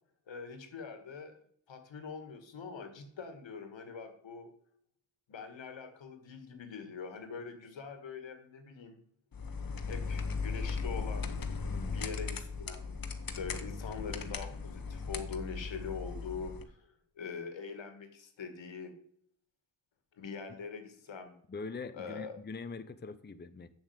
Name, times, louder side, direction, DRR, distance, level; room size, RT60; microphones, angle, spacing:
voice 1, 0.3-1.4 1.7-4.5 5.3-9.0 9.9-11.3 11.9-12.9 13.3-18.9 20.2-21.3 21.9-22.4, left 5 dB, 80° left, 7 dB, 2.1 m, -43 dB
sound 1, 9.3-16.6, left 4 dB, 50° left, 1.2 m, -37 dB
voice 2, 11.7-12.1 21.5-23.7, left 4 dB, 25° left, 11 dB, 0.7 m, -43 dB
7.4 x 7.2 x 8.1 m, 0.67 s
cardioid pair, 80°, 45 cm